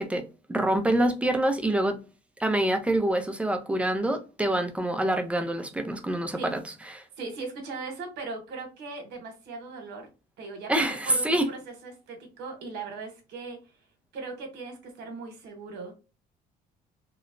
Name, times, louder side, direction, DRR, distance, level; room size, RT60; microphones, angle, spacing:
voice 1, 0.0-2.0 2.4-7.0 10.7-11.5, right 1 dB, 5° right, 0.4 m, -26 dB
voice 2, 7.2-10.1 10.4-13.6 14.1-15.9, right 4 dB, 80° right, 1.0 m, -39 dB
2.9 x 2.0 x 2.5 m
cardioid pair, 110°, 17 cm